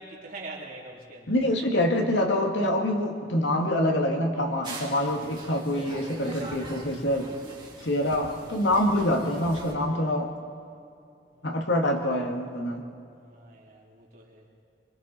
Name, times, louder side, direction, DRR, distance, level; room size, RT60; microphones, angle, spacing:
voice 1, 0.0-1.4 4.9-5.3 8.0-8.5 11.3-11.7 13.2-14.5, right 2 dB, 50° right, -3 dB, 3.5 m, -45 dB
voice 2, 1.3-7.3 7.8-10.3 11.4-12.9, left 1 dB, 80° left, 2 dB, 2.2 m, -25 dB
sound 1, 4.6-9.7, right 2 dB, 25° right, 3.3 m, -42 dB
25.5 x 25.0 x 4.4 m, 2.5 s
head